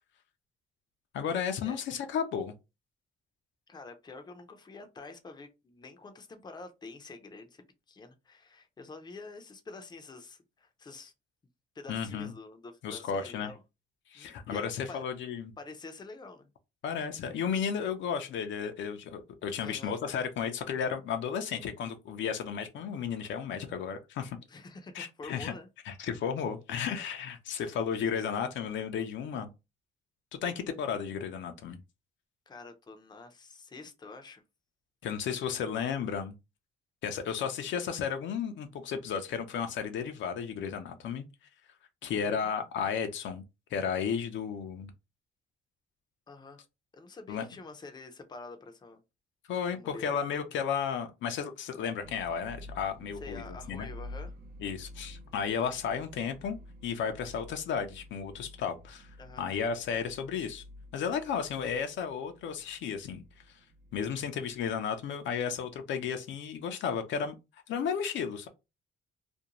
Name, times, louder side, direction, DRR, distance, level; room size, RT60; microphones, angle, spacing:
voice 1, 1.1-2.5 11.9-12.3 12.8-13.5 14.1-15.5 16.8-24.4 24.9-25.5 25.9-29.5 30.4-31.8 35.0-36.3 37.0-41.3 42.0-43.4 43.7-44.9 47.3-47.4 49.5-53.9 54.6-59.1 59.4-60.6 60.9-63.2 63.9-67.4 67.7-68.5, left 7 dB, 70° left, 0.5 m, -33 dB
voice 2, 3.7-11.1 11.7-13.6 14.1-15.0 15.6-16.5 19.6-20.0 24.5-25.7 27.6-27.7 32.5-34.4 42.2-42.5 46.3-46.6 46.9-49.0 49.7-50.2 53.2-54.3 59.2-59.5, left 3 dB, 20° left, 0.5 m, -47 dB
sound 1, 52.0-64.9, left 1 dB, 50° right, 0.4 m, -49 dB
2.5 x 2.1 x 2.8 m
cardioid pair, 90°, 20 cm